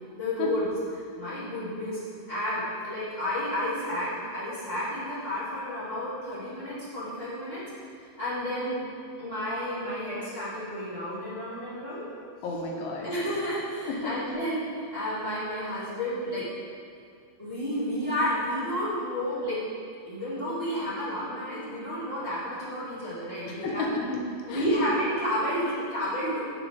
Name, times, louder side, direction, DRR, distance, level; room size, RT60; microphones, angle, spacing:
voice 1, 0.1-0.6 1.1-2.0 2.3-7.6 8.2-8.8 9.2-12.1 13.0-16.5 17.4-19.6 20.0-23.8 24.5-26.4, equal, 30° left, -12 dB, 1.0 m, -31 dB
voice 2, 12.4-13.1 13.9-14.2 23.5-24.2 24.5-24.7, left 3 dB, 75° left, -1 dB, 3.2 m, -32 dB
13.0 x 6.8 x 3.6 m, 2.3 s
omnidirectional pair, 5.8 m